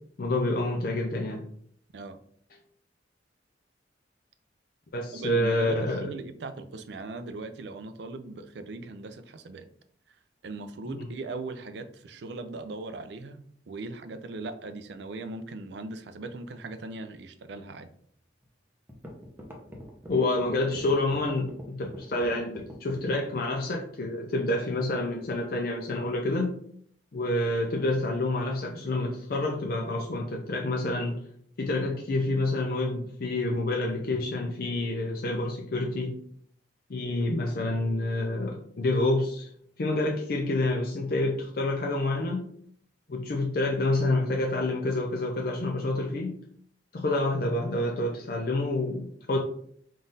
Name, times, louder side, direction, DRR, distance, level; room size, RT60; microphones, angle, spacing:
voice 1, 0.2-1.4 4.9-6.1 11.0-11.1 20.1-26.5 27.1-31.2 31.6-36.2 36.9-39.5 39.8-42.5 43.1-46.4 46.9-49.4, left 2 dB, 50° left, 0 dB, 0.5 m, -28 dB
voice 2, 5.1-9.7 10.1-10.2 10.4-17.9, right 3 dB, 65° right, 10 dB, 0.4 m, -39 dB
sound 1, 18.4-18.5 18.9-23.5, equal, 10° right, 0.6 m, -43 dB
3.8 x 2.4 x 3.9 m, 0.63 s
head